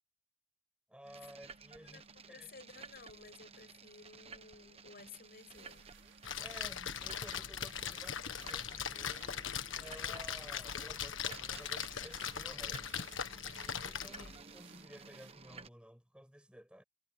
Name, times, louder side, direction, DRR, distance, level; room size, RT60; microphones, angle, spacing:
voice 1, 0.9-2.5 6.4-12.9 13.8-16.8, equal, 5° right, 7.0 m, -54 dB
sound 1, 1.0-15.7, right 4 dB, 30° right, 1.2 m, -54 dB
voice 2, 1.8-5.9 14.1-14.3, left 4 dB, 50° left, 7.3 m, -55 dB
sound 2, 5.0-15.7, right 8 dB, 75° right, 4.3 m, -63 dB
Splash splatter, 6.2-14.4, left 8 dB, 85° left, 1.5 m, -40 dB
head